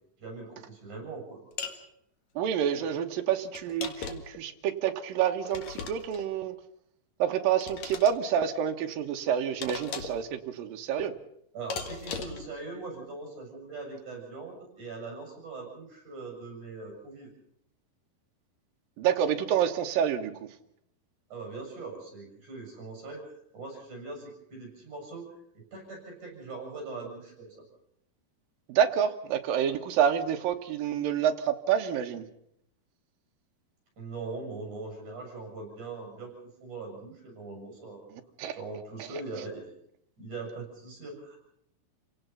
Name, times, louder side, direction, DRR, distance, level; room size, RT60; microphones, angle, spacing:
voice 1, 0.2-1.4 11.5-17.3 21.3-23.3 23.5-25.3 25.5-27.5 34.0-36.3 36.6-38.1 38.5-39.7 40.2-41.4, right 3 dB, 50° right, 2 dB, 8.2 m, -41 dB
sound 1, 1.6-1.8 3.6-4.4 5.5-6.3 7.6-8.2 9.6-10.3 11.7-12.5, left 5 dB, 55° left, 2.6 m, -38 dB
voice 2, 2.4-6.5 7.2-11.1 19.0-20.5 28.7-32.3 38.4-38.6 39.0-39.1, right 9 dB, 70° right, 5 dB, 2.9 m, -28 dB
28.5 x 17.5 x 5.6 m, 0.75 s
omnidirectional pair, 4.5 m